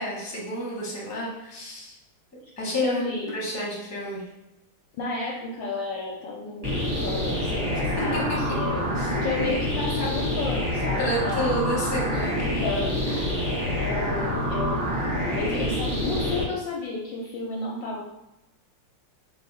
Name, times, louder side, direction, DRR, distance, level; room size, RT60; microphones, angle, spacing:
voice 1, 0.0-2.0 2.6-3.0 3.3-4.3 8.0-8.2 8.7-9.2 11.0-12.7, equal, 10° left, -6 dB, 0.9 m, -30 dB
voice 2, 2.8-3.3 4.9-8.8 9.2-11.6 12.4-13.4 13.7-14.9 15.3-18.1, left 3 dB, 70° left, -2 dB, 1.2 m, -32 dB
sound 1, 6.6-16.4, equal, 25° right, 1.0 m, -27 dB
4.2 x 2.9 x 4.1 m, 0.94 s
omnidirectional pair, 2.4 m